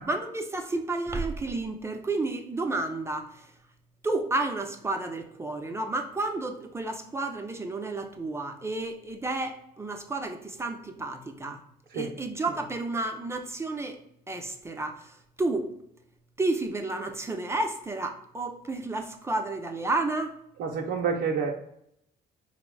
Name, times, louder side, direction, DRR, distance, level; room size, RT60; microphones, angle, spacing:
voice 1, 0.1-3.5 4.0-11.6 11.9-14.0 14.3-15.7 16.4-20.3, right 2 dB, 15° right, 4 dB, 0.5 m, -31 dB
voice 2, 20.6-21.5, right 6 dB, 65° right, 1 dB, 0.6 m, -28 dB
4.8 x 2.0 x 4.5 m, 0.77 s
cardioid pair, 110°, 17 cm